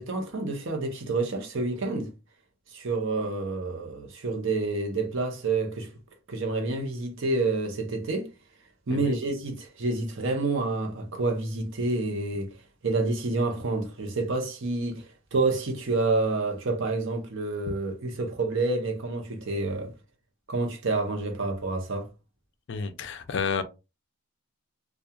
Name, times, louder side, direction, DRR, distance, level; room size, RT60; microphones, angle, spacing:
voice 1, 0.0-2.1 2.7-6.0 6.3-8.3 8.9-12.5 12.8-19.9 20.5-22.1, right 3 dB, 60° right, 0.7 m, -28 dB
voice 2, 22.7-23.6, left 5 dB, 55° left, 0.4 m, -30 dB
2.8 x 2.3 x 2.3 m
head